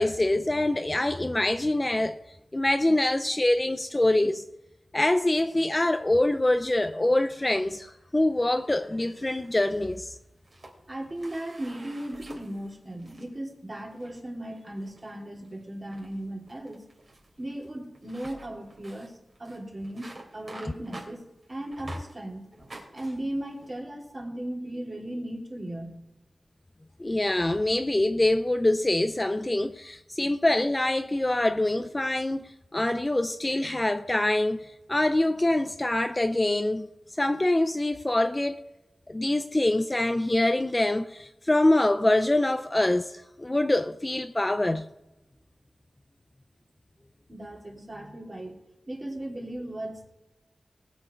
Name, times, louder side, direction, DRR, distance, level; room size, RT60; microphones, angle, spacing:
voice 1, 0.0-2.2 2.5-4.4 4.9-10.2 27.0-36.9 37.2-38.6 39.1-44.9, left 1 dB, 20° left, 0.5 m, -25 dB
sound 1, 9.2-10.0 10.4-13.3 13.8-14.2 14.8-15.1 15.4-15.6 15.9-22.2 22.5-23.8, right 2 dB, 50° right, 2.9 m, -48 dB
voice 2, 10.9-16.8 17.4-22.4 22.9-26.0 47.3-48.5 48.9-50.1, right 1 dB, 30° right, 3.1 m, -37 dB
19.5 x 7.2 x 4.5 m
wide cardioid pair, 110°, 0 cm